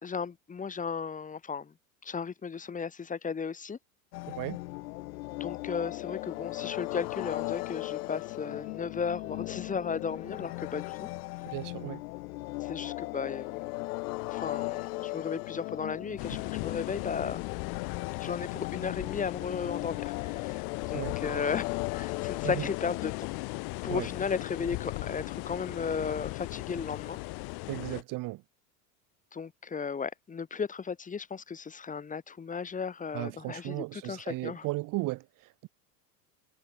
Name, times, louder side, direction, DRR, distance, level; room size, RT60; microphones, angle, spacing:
voice 1, 0.0-1.7 2.0-3.8 5.3-11.1 12.6-13.6 14.3-17.4 18.2-23.1 23.8-27.2 29.3-34.6, left 6 dB, 15° left, 3.1 m, -35 dB
sound 1, 4.1-23.5, left 22 dB, 70° left, 1.7 m, -37 dB
voice 2, 4.3-4.6 11.5-12.0 20.9-21.2 22.4-22.7 23.9-24.1 27.7-28.4 33.1-35.7, right 20 dB, 45° right, 2.0 m, -35 dB
sound 2, 16.2-28.0, left 28 dB, 55° left, 4.1 m, -38 dB
supercardioid pair, 140°, 47 cm